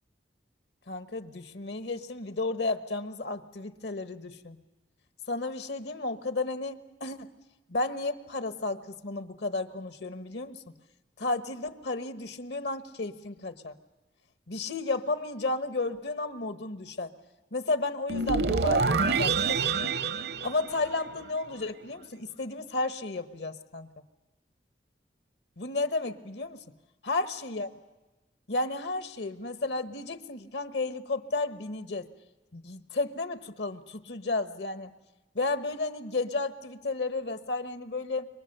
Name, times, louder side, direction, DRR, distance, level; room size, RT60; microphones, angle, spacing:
voice 1, 0.9-4.6 5.3-7.3 7.7-10.7 11.2-13.7 14.5-17.1 17.5-19.4 19.8-20.0 20.4-23.9 25.6-26.6 27.0-27.7 28.5-32.1 32.5-34.9 35.3-38.3, left 3 dB, 75° left, 10 dB, 1.2 m, -32 dB
sound 1, 18.1-21.4, right 4 dB, 65° right, 0.7 m, -27 dB
26.0 x 23.5 x 6.7 m, 1.1 s
head